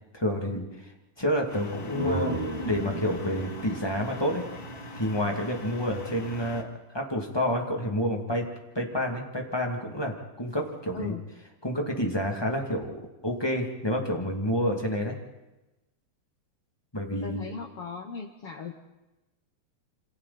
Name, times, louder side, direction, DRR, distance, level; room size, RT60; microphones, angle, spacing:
voice 1, 0.1-0.9 1.2-2.3 2.6-4.4 4.9-6.7 6.9-8.5 8.7-11.2 11.6-15.2 16.9-17.5, equal, 10° left, 1 dB, 1.9 m, -29 dB
sound 1, 1.5-6.6, equal, 35° left, 1.7 m, -41 dB
sound 2, 1.6-5.3, equal, 10° right, 1.8 m, -34 dB
voice 2, 17.2-18.7, left 5 dB, 70° left, 5 dB, 1.4 m, -37 dB
28.0 x 27.0 x 4.3 m, 1.0 s
omnidirectional pair, 4.3 m